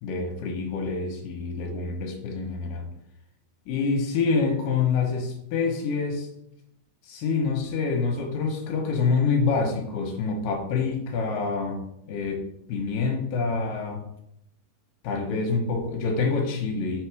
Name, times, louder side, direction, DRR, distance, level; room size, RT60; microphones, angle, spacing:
voice 1, 0.0-2.9 3.7-6.3 7.0-12.4 12.7-14.1 15.0-17.1, left 4 dB, 70° left, 2 dB, 2.4 m, -26 dB
6.2 x 4.1 x 4.7 m, 0.77 s
omnidirectional pair, 4.6 m